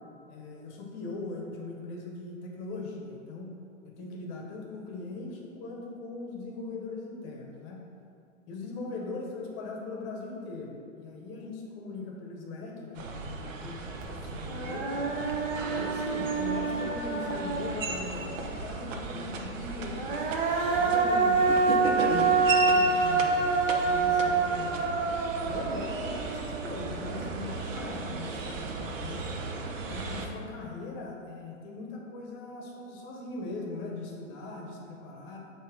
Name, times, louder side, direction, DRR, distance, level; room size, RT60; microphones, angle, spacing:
voice 1, 0.3-3.5 3.8-7.8 8.5-15.1 15.7-20.0 20.8-24.9 25.5-29.3 29.8-35.4, left 3 dB, 30° left, 0 dB, 1.0 m, -40 dB
sound 1, 12.9-30.3, right 3 dB, 70° right, 0.8 m, -36 dB
Human voice, 14.0-14.1 14.5-18.1 19.8-27.0, right 4 dB, 40° right, 0.8 m, -27 dB
7.2 x 2.9 x 5.0 m, 2.4 s
hypercardioid pair, 140°, 39 cm